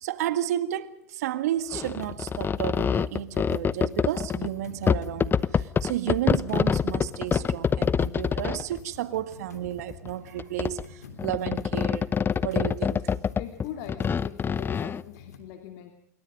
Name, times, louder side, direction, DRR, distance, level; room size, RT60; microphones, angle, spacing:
voice 1, 0.0-12.1 12.4-13.0, right 12 dB, 75° right, 1.8 m, -32 dB
sound 1, 1.7-4.5 4.9-8.8 9.7-10.1 10.4-10.8 11.2-15.0, left 6 dB, 25° left, 0.9 m, -26 dB
sound 2, 1.8-15.4, left 6 dB, 90° left, 3.3 m, -48 dB
voice 2, 13.4-15.9, left 11 dB, 65° left, 2.6 m, -41 dB
26.5 x 23.0 x 5.3 m
hypercardioid pair, 90°, 9 cm